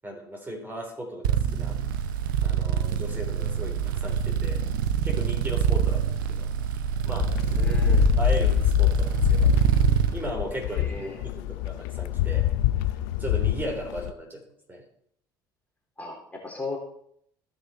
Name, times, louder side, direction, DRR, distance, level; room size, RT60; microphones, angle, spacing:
voice 1, 0.0-1.8 2.4-4.6 5.0-6.5 7.0-7.6 8.2-9.6 10.1-12.5 13.2-14.4 14.7-14.8, equal, 15° right, 1 dB, 3.8 m, -36 dB
sound 1, 1.2-10.2, right 9 dB, 75° right, 0.7 m, -25 dB
sound 2, 7.2-14.1, left 16 dB, 70° left, 0.5 m, -25 dB
voice 2, 7.5-8.1 10.7-11.2 16.0-16.8, left 3 dB, 15° left, -1 dB, 3.5 m, -36 dB
17.0 x 5.8 x 4.3 m, 0.69 s
hypercardioid pair, 60°, 11 cm